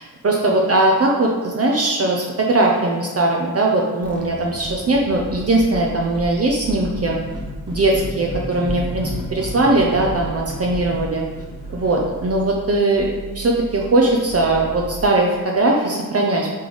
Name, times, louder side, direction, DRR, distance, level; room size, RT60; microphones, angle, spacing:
voice 1, 0.0-7.2 7.7-11.2 11.7-16.5, right 2 dB, 40° right, -1 dB, 0.8 m, -19 dB
sound 1, 4.0-15.5, right 4 dB, 5° left, 1.1 m, -37 dB
sound 2, 5.1-5.8 6.1-12.2, equal, 15° right, 1.5 m, -32 dB
8.1 x 3.4 x 4.0 m, 1.4 s
wide cardioid pair, 100°, 36 cm